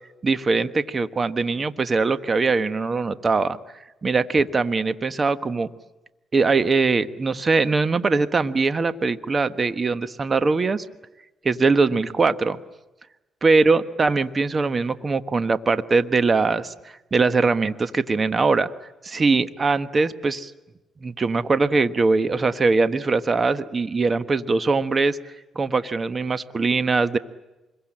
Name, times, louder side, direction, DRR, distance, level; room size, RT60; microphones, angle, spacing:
voice 1, 0.2-3.6 4.0-5.7 6.3-10.8 11.4-12.6 13.4-16.7 17.1-18.7 19.0-20.5 21.0-25.2 25.5-27.2, right 4 dB, 35° right, 11 dB, 1.3 m, -21 dB
27.5 x 22.5 x 8.8 m, 1.0 s
cardioid pair, 90°, 0 cm